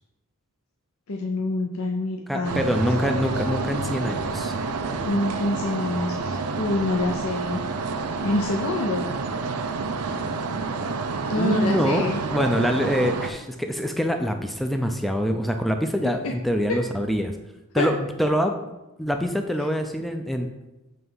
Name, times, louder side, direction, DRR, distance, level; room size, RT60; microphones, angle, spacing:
voice 1, 1.1-2.7 5.0-7.6 8.2-9.1 11.3-12.2 16.0-16.3 16.7-16.8 17.8-17.9, left 2 dB, 65° left, 1 dB, 0.6 m, -26 dB
voice 2, 2.3-4.5 11.4-17.3 17.7-18.6 19.0-20.5, equal, ahead, 5 dB, 0.4 m, -25 dB
sound 1, 2.4-13.3, right 4 dB, 90° right, 0.6 m, -29 dB
7.7 x 3.3 x 5.5 m, 0.99 s
head